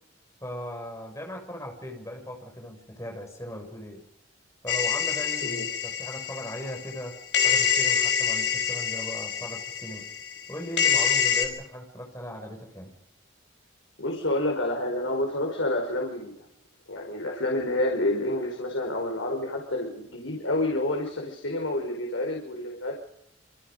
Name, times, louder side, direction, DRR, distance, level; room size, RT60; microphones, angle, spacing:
voice 1, 0.4-4.0 4.6-10.1 10.5-12.9, equal, 15° left, 3 dB, 6.5 m, -38 dB
sound 1, 4.7-7.0 7.3-11.4, left 7 dB, 60° left, 5.3 m, -26 dB
voice 2, 14.0-16.3 16.9-23.0, left 1 dB, 85° left, 1 dB, 5.0 m, -28 dB
27.0 x 26.0 x 5.3 m, 0.77 s
head